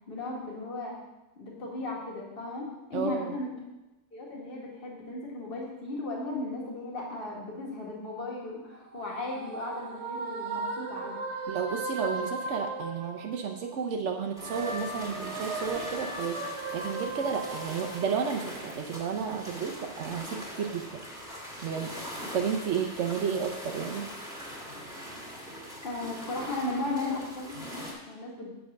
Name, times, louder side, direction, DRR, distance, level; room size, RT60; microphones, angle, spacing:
voice 1, 0.1-1.0 1.4-3.5 4.1-11.2 25.8-28.5, left 2 dB, 50° left, -3 dB, 1.8 m, -36 dB
voice 2, 2.9-3.3 11.5-21.0 21.6-21.9 22.3-24.1, right 6 dB, 85° right, 3 dB, 1.1 m, -32 dB
sound 1, 8.7-13.7 14.1-18.8, right 3 dB, 70° right, 1.3 m, -37 dB
sound 2, 14.4-27.9, equal, 5° right, 1.7 m, -42 dB
7.2 x 4.9 x 6.4 m, 1.0 s
omnidirectional pair, 1.2 m